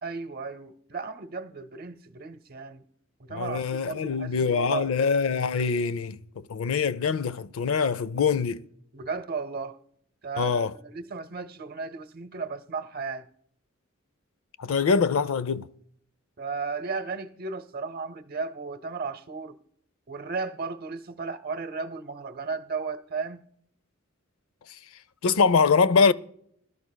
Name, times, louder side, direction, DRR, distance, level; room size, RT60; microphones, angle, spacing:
voice 1, 0.0-2.8 3.2-4.9 8.9-9.8 10.2-13.3 16.4-19.6 20.1-23.5, right 4 dB, 45° right, 0.8 m, -35 dB
voice 2, 3.3-8.6 10.4-10.7 14.6-15.7 25.2-26.1, left 5 dB, 85° left, 0.5 m, -24 dB
21.5 x 12.5 x 2.2 m
head